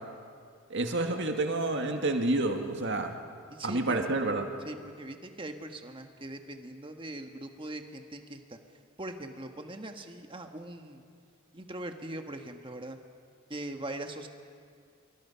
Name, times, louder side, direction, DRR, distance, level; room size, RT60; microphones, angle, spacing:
voice 1, 0.7-3.1 3.6-4.5, right 2 dB, 55° right, 4 dB, 2.1 m, -29 dB
voice 2, 3.5-4.0 4.6-8.6 9.0-11.0 11.5-13.0 13.5-14.3, right 1 dB, 25° right, 5 dB, 1.5 m, -41 dB
26.5 x 23.5 x 5.8 m, 2.2 s
head